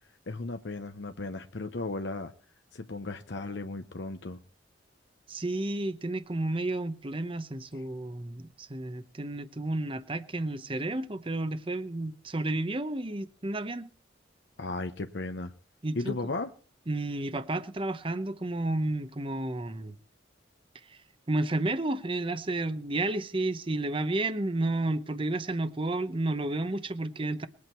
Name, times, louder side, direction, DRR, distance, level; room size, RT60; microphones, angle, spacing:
voice 1, 0.3-2.3 2.7-4.4 7.7-7.8 14.6-15.5 16.0-16.5, left 2 dB, 70° left, 0.8 m, -35 dB
voice 2, 5.3-13.9 15.8-16.1 16.9-19.9 21.3-27.5, right 2 dB, 30° right, 0.8 m, -31 dB
21.5 x 8.5 x 4.5 m
head